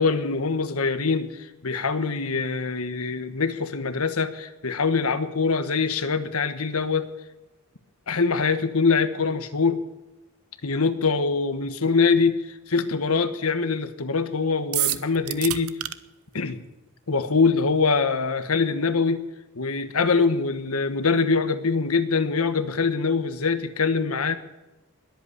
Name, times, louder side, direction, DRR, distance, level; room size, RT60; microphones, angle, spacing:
voice 1, 0.0-7.1 8.1-9.8 10.6-15.8 16.3-16.6 17.1-19.2 19.6-24.4, left 4 dB, 85° left, 11 dB, 1.2 m, -24 dB
sound 1, 14.7-15.9, right 15 dB, 85° right, 0.7 m, -26 dB
21.0 x 8.3 x 6.6 m, 1.1 s
head